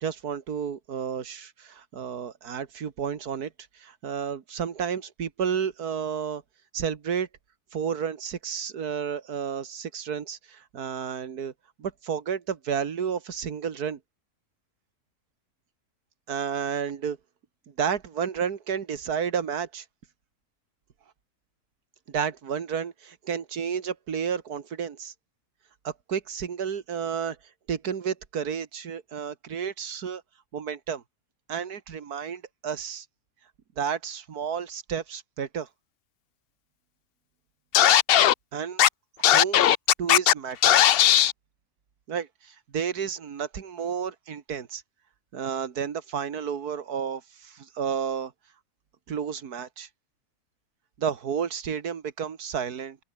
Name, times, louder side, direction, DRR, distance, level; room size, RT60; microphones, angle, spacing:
voice 1, 0.0-6.4 6.7-7.3 7.7-11.5 11.8-14.0 16.3-17.2 17.7-19.9 22.1-25.1 25.8-27.4 27.7-30.2 30.5-31.0 31.5-33.1 33.8-35.7 38.5-38.8 39.2-39.7 40.0-40.8 42.1-44.8 45.3-48.3 49.1-49.9 51.0-53.0, right 7 dB, 85° right, 2.0 m, -31 dB
Scratching (performance technique), 37.7-38.3 38.8-38.9 39.2-40.3 40.6-41.3, left 11 dB, 65° left, 0.5 m, -17 dB
open air
omnidirectional pair, 1.6 m